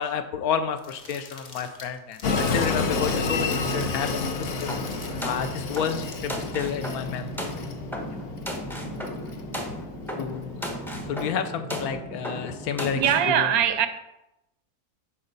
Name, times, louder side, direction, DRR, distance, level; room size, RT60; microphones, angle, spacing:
voice 1, 0.0-4.7 5.2-7.5 10.2-10.6 11.1-13.0 13.3-13.5, left 7 dB, 75° left, 1.1 m, -30 dB
sound 1, 0.8-6.4, left 3 dB, 35° left, 1.1 m, -46 dB
Train, 2.2-11.2, left 4 dB, 50° left, 0.7 m, -30 dB
sound 2, 4.7-13.3, equal, ahead, 0.6 m, -35 dB
voice 2, 12.9-13.9, right 9 dB, 75° right, 1.1 m, -21 dB
10.5 x 4.4 x 4.0 m
omnidirectional pair, 1.6 m